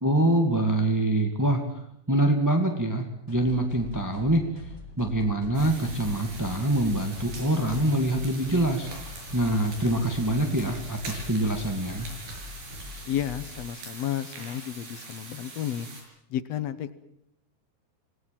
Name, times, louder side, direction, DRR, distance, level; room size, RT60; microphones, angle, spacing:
voice 1, 0.0-8.9 9.3-12.1, right 1 dB, 10° right, 3 dB, 1.1 m, -25 dB
sound 1, 3.3-13.6, left 2 dB, 20° left, 4.1 m, -43 dB
sound 2, 5.5-16.0, right 3 dB, 80° right, 7.9 m, -43 dB
voice 2, 13.0-15.9 16.3-16.9, left 10 dB, 65° left, 13 dB, 1.7 m, -32 dB
27.5 x 19.0 x 7.7 m, 0.79 s
omnidirectional pair, 4.2 m